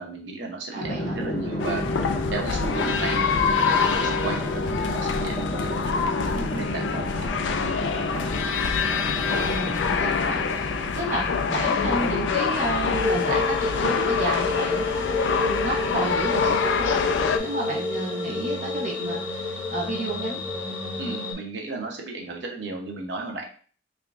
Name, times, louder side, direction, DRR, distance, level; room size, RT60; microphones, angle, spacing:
voice 1, 0.0-1.8 2.3-7.2 7.6-8.0 21.0-23.4, right 3 dB, 75° right, 1 dB, 0.8 m, -35 dB
voice 2, 0.7-1.2 9.4-14.9 15.4-17.1 17.4-20.4, right 2 dB, 45° right, -4 dB, 0.9 m, -31 dB
Drum, 0.8-13.2, equal, 55° left, 1.3 m, -31 dB
sound 1, 1.6-17.4, left 5 dB, 80° left, 0.4 m, -25 dB
sound 2, 12.9-21.3, left 3 dB, 40° left, 1.6 m, -29 dB
3.6 x 3.4 x 2.5 m, 0.42 s
head